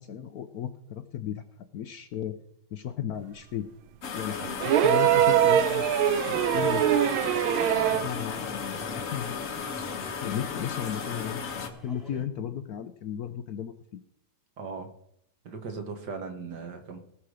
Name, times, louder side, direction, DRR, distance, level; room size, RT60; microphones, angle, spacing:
voice 1, 0.0-1.4 1.7-2.4 2.7-3.7 4.1-4.4 4.6-5.8 6.3-6.9 7.9-9.4 10.2-11.4 11.8-14.0, left 9 dB, 70° left, 10 dB, 0.9 m, -35 dB
sound 1, 4.0-11.7, left 6 dB, 45° left, 1.2 m, -35 dB
sound 2, 4.6-8.2 9.5-9.6, right 11 dB, 85° right, 1.4 m, -23 dB
sound 3, 6.2-12.2, equal, ahead, 1.4 m, -46 dB
voice 2, 14.6-14.9 15.5-17.0, right 4 dB, 55° right, 5 dB, 1.9 m, -38 dB
18.0 x 6.1 x 4.9 m, 0.71 s
omnidirectional pair, 2.3 m